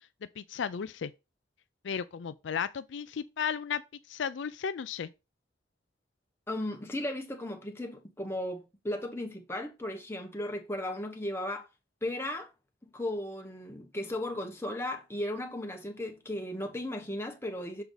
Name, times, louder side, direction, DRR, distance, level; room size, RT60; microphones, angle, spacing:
voice 1, 0.4-1.1 1.8-3.8 4.1-5.1, left 7 dB, 85° left, 0.4 m, -34 dB
voice 2, 6.5-11.7 12.0-12.5 12.8-17.8, left 1 dB, 15° left, 1.2 m, -36 dB
6.7 x 4.6 x 3.9 m
head